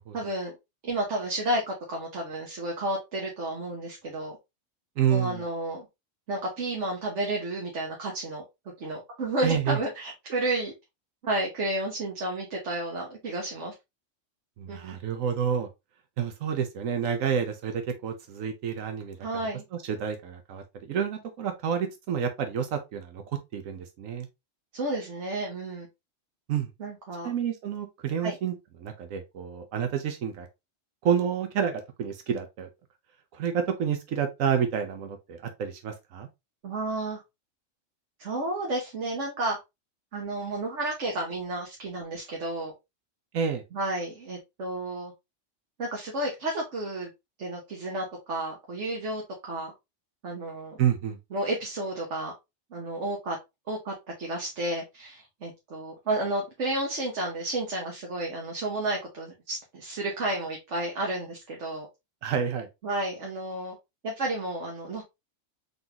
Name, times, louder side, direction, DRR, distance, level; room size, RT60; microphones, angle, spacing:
voice 1, 0.1-0.6 0.8-4.4 5.1-5.9 6.3-8.4 8.8-10.7 11.2-13.7 14.7-15.0 19.2-19.6 24.7-25.9 26.8-27.3 28.2-28.4 36.6-37.2 38.2-39.6 40.1-42.7 43.7-45.1 45.8-47.1 47.4-49.7 50.2-50.8 51.3-52.3 52.7-53.4 53.7-61.9 62.8-63.8 64.0-65.0, right 1 dB, 65° right, 1.4 m, -31 dB
voice 2, 5.0-5.4 9.4-9.8 14.6-15.7 16.2-19.2 19.8-23.2 23.5-24.3 26.5-26.7 27.2-28.5 28.8-30.5 31.0-32.7 33.3-36.3 43.3-43.6 50.8-51.2 62.2-62.7, right 8 dB, 85° right, 1.1 m, -29 dB
3.9 x 3.8 x 2.8 m
omnidirectional pair, 1.4 m